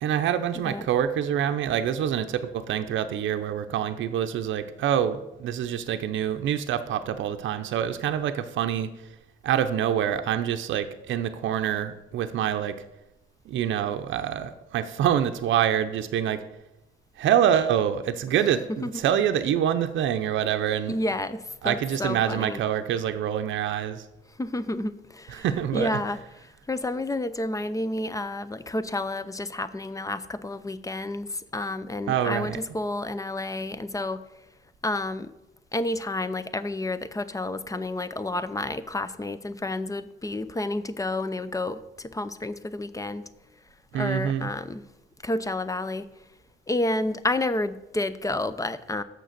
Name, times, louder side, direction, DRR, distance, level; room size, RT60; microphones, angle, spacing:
voice 1, 0.0-8.9 9.4-12.8 13.5-16.4 17.2-21.0 21.6-24.1 25.3-26.0 32.1-32.6 43.9-44.5, right 9 dB, 75° right, 8 dB, 0.6 m, -26 dB
voice 2, 20.9-22.6 24.4-25.5 25.7-26.2 26.7-34.2 34.8-35.3 35.7-43.2 43.9-44.8 45.2-46.1 46.7-49.0, left 2 dB, 15° left, 13 dB, 0.6 m, -30 dB
6.6 x 6.4 x 6.7 m, 0.92 s
cardioid pair, 90°, 20 cm